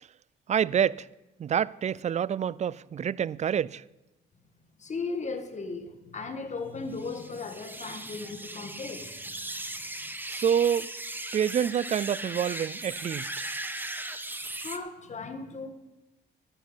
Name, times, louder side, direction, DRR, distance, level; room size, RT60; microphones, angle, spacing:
voice 1, 0.5-1.1 1.4-3.8 10.3-10.9 11.3-13.5, right 8 dB, 35° right, 0.4 m, -27 dB
voice 2, 4.8-9.8 14.6-15.7, left 4 dB, 35° left, 1.7 m, -37 dB
sound 1, 6.9-14.8, right 2 dB, 10° right, 1.0 m, -38 dB
12.5 x 10.0 x 5.7 m
cardioid pair, 90°, 20 cm